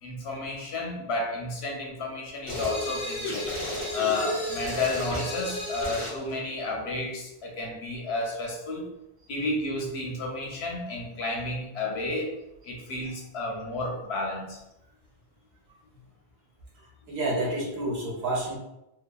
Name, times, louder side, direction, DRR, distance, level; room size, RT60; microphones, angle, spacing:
voice 1, 0.0-3.3 3.9-8.9 9.3-12.4 12.6-14.6, left 2 dB, 85° left, 0 dB, 0.9 m, -31 dB
sound 1, 2.5-6.2, left 1 dB, 30° left, 1.0 m, -32 dB
voice 2, 16.7-18.6, right 2 dB, 80° right, -3 dB, 1.1 m, -30 dB
2.7 x 2.2 x 2.2 m, 0.90 s
omnidirectional pair, 1.0 m